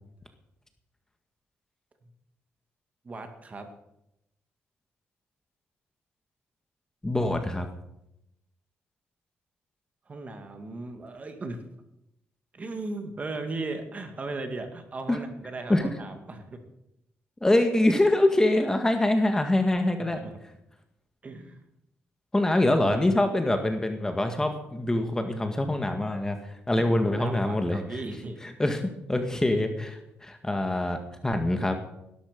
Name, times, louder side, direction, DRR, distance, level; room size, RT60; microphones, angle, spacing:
voice 1, 3.0-3.7 10.1-11.6 12.5-16.6 20.0-20.4 21.2-21.6 26.8-28.4, right 2 dB, 30° right, 6 dB, 2.2 m, -37 dB
voice 2, 7.0-7.7 15.1-15.2 15.7-15.9 17.4-20.2 22.3-28.0 28.4-31.8, left 1 dB, 10° left, 6 dB, 1.7 m, -25 dB
17.5 x 13.0 x 5.3 m, 0.82 s
cardioid pair, 125°, 5 cm